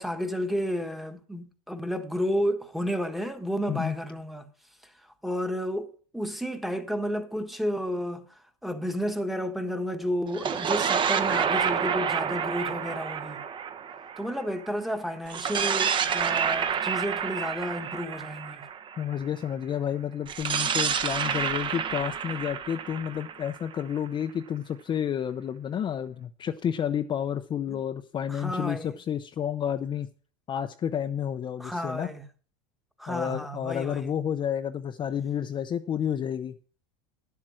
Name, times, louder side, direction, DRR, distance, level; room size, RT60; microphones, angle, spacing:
voice 1, 0.0-4.5 5.2-8.3 8.6-13.4 14.2-18.6 27.7-27.8 28.3-29.0 31.6-32.2 33.0-34.1, equal, ahead, 1.3 m, -31 dB
sound 1, 10.3-14.7 15.3-19.2 20.3-24.1, right 7 dB, 30° right, 1.0 m, -29 dB
voice 2, 19.0-30.1 30.5-32.1 33.1-36.6, left 9 dB, 30° left, 0.7 m, -30 dB
11.0 x 7.6 x 6.3 m
supercardioid pair, 120°, 16 cm